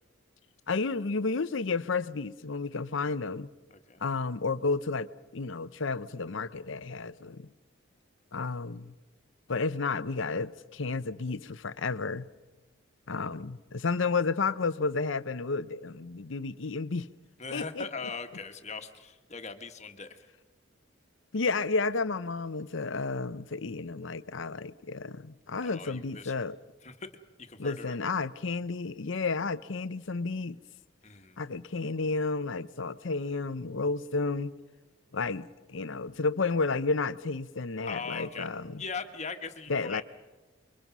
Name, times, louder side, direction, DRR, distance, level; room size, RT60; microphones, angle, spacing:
voice 1, 0.7-3.5 4.0-5.1 5.3-7.5 8.3-9.0 9.5-12.2 13.1-17.1 17.5-17.9 21.3-26.6 27.6-30.6 31.4-34.5 35.1-38.8 39.7-40.0, left 4 dB, 70° left, 0.7 m, -31 dB
voice 2, 17.4-20.3 25.6-26.3 26.8-27.1 27.4-28.0 31.0-31.4 37.9-38.5 38.8-40.0, left 4 dB, 35° left, 1.5 m, -40 dB
29.5 x 23.0 x 6.1 m
head